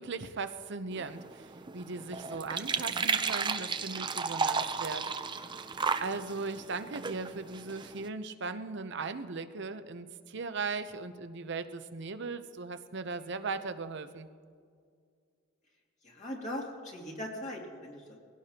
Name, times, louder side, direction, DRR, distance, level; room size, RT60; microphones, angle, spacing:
voice 1, 0.0-5.1 5.6-5.7 6.0-14.3, right 4 dB, 60° right, 10 dB, 0.7 m, -38 dB
sound 1, 0.9-8.1, right 5 dB, 25° right, 0.5 m, -34 dB
voice 2, 16.0-18.2, left 1 dB, 40° left, -2 dB, 2.5 m, -40 dB
21.5 x 16.5 x 2.9 m, 2.2 s
head